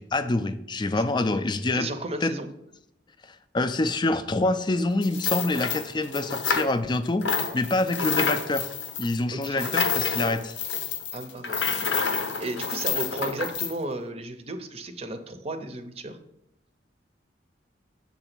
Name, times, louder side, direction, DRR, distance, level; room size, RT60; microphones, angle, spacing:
voice 1, 0.0-1.9 2.2-2.3 3.5-8.7 9.0-10.5, left 2 dB, 25° left, 11 dB, 0.4 m, -26 dB
voice 2, 1.7-2.5 9.3-9.8 11.1-11.9 12.4-16.2, right 2 dB, 35° right, 8 dB, 0.6 m, -34 dB
sound 1, 5.0-7.0 7.2-13.7, left 5 dB, 85° left, 0.8 m, -28 dB
7.1 x 3.9 x 5.9 m, 0.81 s
head